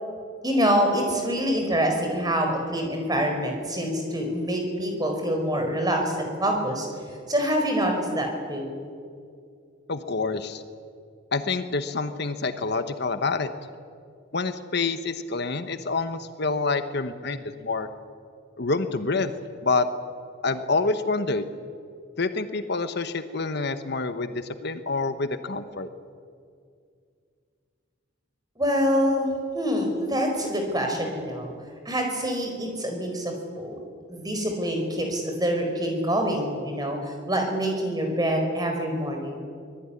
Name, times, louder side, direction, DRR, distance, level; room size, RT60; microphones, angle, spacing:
voice 1, 0.4-6.9 7.3-8.7 28.6-31.5 31.8-33.8 34.1-37.0 37.3-39.4, equal, 20° right, 3 dB, 4.9 m, -26 dB
voice 2, 9.9-10.6 11.3-13.5 14.3-17.9 18.6-19.3 19.6-19.9 20.4-21.5 22.2-25.9, left 3 dB, 55° left, 9 dB, 1.2 m, -27 dB
24.5 x 19.5 x 9.9 m, 2.2 s
head